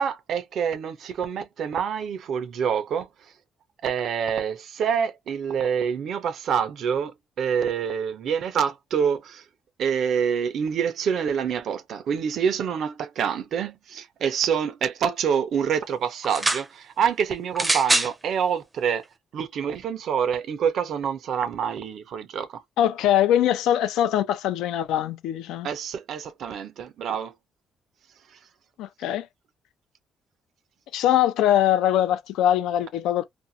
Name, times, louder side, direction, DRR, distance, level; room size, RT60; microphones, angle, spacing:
voice 1, 0.0-3.1 3.8-9.4 9.8-19.0 19.3-22.6 25.6-27.3, right 7 dB, 70° right, 0.6 m, -26 dB
sound 1, 16.2-16.7 17.5-18.1 19.0-19.1, right 2 dB, 15° right, 0.5 m, -23 dB
voice 2, 22.8-25.7 28.8-29.3 30.9-33.2, left 11 dB, 90° left, 0.4 m, -22 dB
2.5 x 2.2 x 2.6 m
cardioid pair, 90°, 0 cm